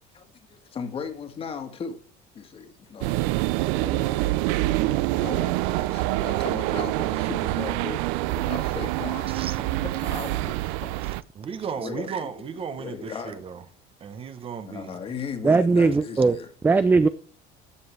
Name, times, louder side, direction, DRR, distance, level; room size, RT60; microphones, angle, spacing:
voice 1, 0.1-2.0 2.3-3.2 3.8-4.3 5.0-9.4 9.7-11.2 11.8-12.3 12.8-13.4 14.6-16.5, left 6 dB, 30° left, 2.0 m, -37 dB
sound 1, 3.0-11.2, right 17 dB, 85° right, 0.6 m, -26 dB
voice 2, 9.3-9.6 11.3-13.6 14.0-15.0, right 6 dB, 30° right, 1.0 m, -35 dB
voice 3, 15.4-16.4 16.6-17.1, right 4 dB, 10° right, 0.4 m, -19 dB
14.0 x 7.8 x 3.3 m
cardioid pair, 155°, 19 cm